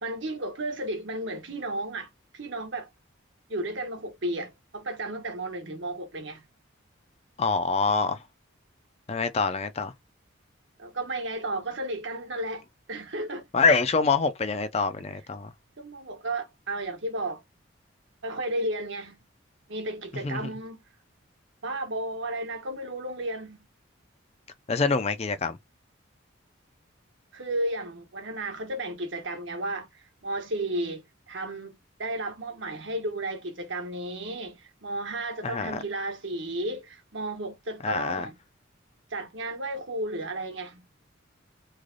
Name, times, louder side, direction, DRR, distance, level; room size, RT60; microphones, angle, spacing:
voice 1, 0.0-2.9 3.5-6.4 10.8-13.5 15.8-17.4 18.2-19.2 19.7-20.8 21.6-23.6 27.3-38.4 39.1-40.8, right 1 dB, 65° right, 1.2 m, -33 dB
voice 2, 7.4-8.2 9.1-9.9 13.5-15.5 20.2-20.4 24.7-25.6 35.4-35.8 37.8-38.3, left 4 dB, 30° left, 0.4 m, -25 dB
3.2 x 2.3 x 3.7 m
head